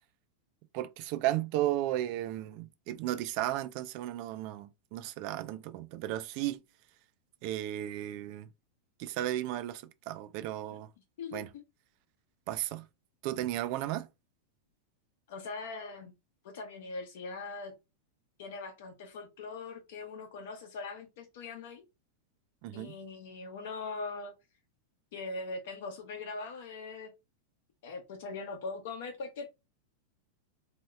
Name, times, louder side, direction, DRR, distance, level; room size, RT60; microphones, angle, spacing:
voice 1, 0.7-6.6 7.4-8.5 9.0-10.9 11.3-11.5 12.5-12.9 13.2-14.1 22.6-23.0, right 14 dB, 40° right, 0.3 m, -34 dB
voice 2, 15.3-16.1 16.4-17.7 18.4-21.8 22.7-24.3 25.1-27.1 27.8-29.5, left 3 dB, 60° left, 0.7 m, -41 dB
2.8 x 2.4 x 3.0 m
supercardioid pair, 170°, 0 cm